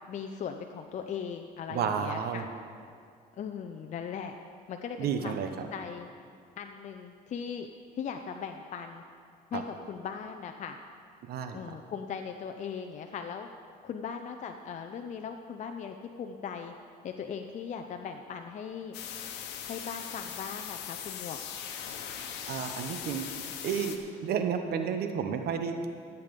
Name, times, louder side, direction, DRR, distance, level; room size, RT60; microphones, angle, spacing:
voice 1, 0.1-2.4 3.4-4.4 4.7-5.4 5.7-6.1 6.6-7.7 7.9-9.0 9.5-9.6 9.9-10.8 11.5-13.5 13.8-16.7 17.0-18.9 19.7-21.4, left 7 dB, 45° left, 5 dB, 0.6 m, -39 dB
voice 2, 1.7-2.5 5.0-5.7 9.5-9.6 11.2-11.8 22.5-23.3 23.6-25.9, right 7 dB, 65° right, 6 dB, 0.9 m, -32 dB
sound 1, 18.9-24.0, left 8 dB, 90° left, 1.1 m, -40 dB
13.5 x 8.2 x 5.3 m, 2.2 s
cardioid pair, 110°, 17 cm